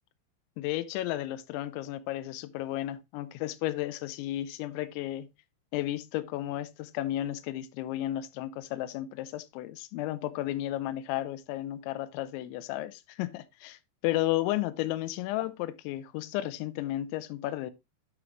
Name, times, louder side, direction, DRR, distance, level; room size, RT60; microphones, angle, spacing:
voice 1, 0.6-5.3 5.7-17.7, left 14 dB, 80° left, 2.9 m, -33 dB
12.0 x 4.7 x 3.1 m
omnidirectional pair, 5.6 m